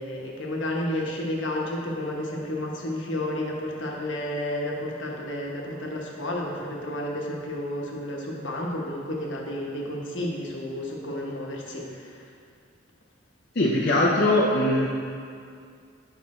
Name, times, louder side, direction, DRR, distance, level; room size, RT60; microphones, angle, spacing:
voice 1, 0.0-12.2, left 1 dB, 65° left, -2 dB, 1.2 m, -31 dB
voice 2, 13.5-14.9, left 1 dB, 50° left, -6 dB, 0.7 m, -21 dB
8.7 x 5.5 x 4.3 m, 2.3 s
head